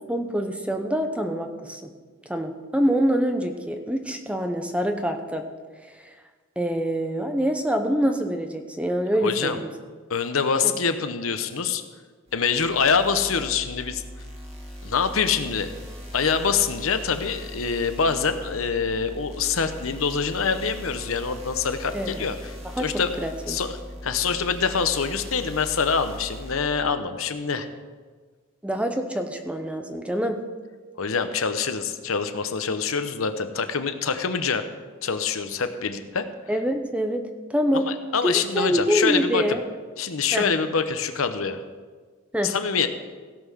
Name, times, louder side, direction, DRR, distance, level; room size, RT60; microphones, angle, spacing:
voice 1, 0.1-1.9 2.3-5.4 5.8-6.1 6.6-9.7 10.6-10.7 21.9-22.2 22.8-22.9 23.2-23.6 28.6-30.4 36.5-37.2 37.5-37.9 38.2-39.6 40.3-40.4 42.3-42.5, equal, 5° right, 5 dB, 0.8 m, -25 dB
voice 2, 9.2-9.6 10.1-11.8 12.3-14.0 14.8-15.7 16.1-22.5 22.8-23.2 23.5-23.8 24.0-27.7 31.0-34.6 35.0-36.3 37.7-39.6 40.0-41.6 42.4-42.9, left 5 dB, 80° left, 9 dB, 0.8 m, -25 dB
sound 1, 12.3-26.6, equal, 30° right, 1.8 m, -40 dB
16.5 x 5.7 x 6.3 m, 1.4 s
head